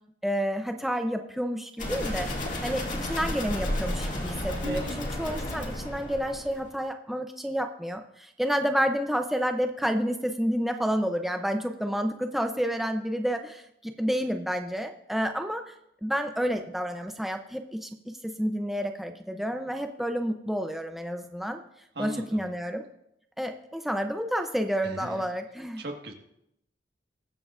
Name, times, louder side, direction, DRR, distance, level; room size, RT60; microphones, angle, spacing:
voice 1, 0.2-2.3 2.6-15.7 16.0-21.6 22.0-22.8 23.4-25.8, equal, ahead, 5 dB, 0.5 m, -30 dB
sound 1, 1.8-6.7, left 1 dB, 45° left, 2.1 m, -32 dB
voice 2, 4.6-5.1 21.9-22.4 24.8-25.3 25.8-26.1, right 1 dB, 60° right, 3 dB, 1.6 m, -37 dB
21.0 x 7.6 x 2.5 m, 0.78 s
head